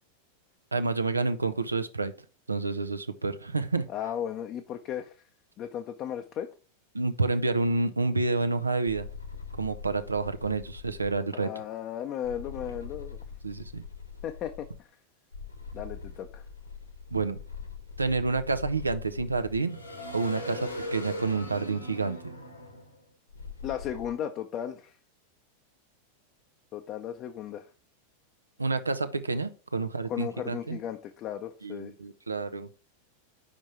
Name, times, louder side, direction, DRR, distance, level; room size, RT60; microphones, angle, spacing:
voice 1, 0.7-2.1 2.5-3.9 6.9-9.1 9.6-11.5 13.4-13.8 17.1-17.4 18.0-19.8 20.1-22.3 28.6-30.8 31.6-32.7, right 3 dB, 80° right, 0.6 m, -29 dB
voice 2, 3.9-5.2 5.6-6.5 11.3-13.2 14.2-14.9 15.7-16.4 23.6-25.0 26.7-27.7 30.1-31.9, left 9 dB, 35° left, 0.6 m, -35 dB
sound 1, 8.9-11.2 12.2-14.8 15.3-24.1, left 3 dB, 85° left, 1.6 m, -41 dB
5.2 x 5.1 x 4.5 m
figure-of-eight pair, 90°, 0 cm